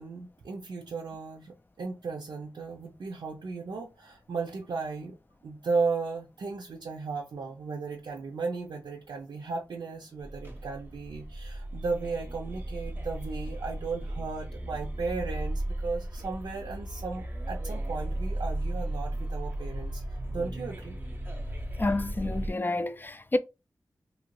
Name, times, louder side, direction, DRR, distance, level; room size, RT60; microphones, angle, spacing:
voice 1, 0.0-5.2 5.4-20.0 20.3-21.0, right 4 dB, 80° right, 0.5 m, -35 dB
sound 1, 10.2-22.5, right 1 dB, 25° right, 0.7 m, -35 dB
voice 2, 21.8-23.4, left 2 dB, 25° left, 0.3 m, -29 dB
2.8 x 2.6 x 3.0 m
cardioid pair, 55°, 8 cm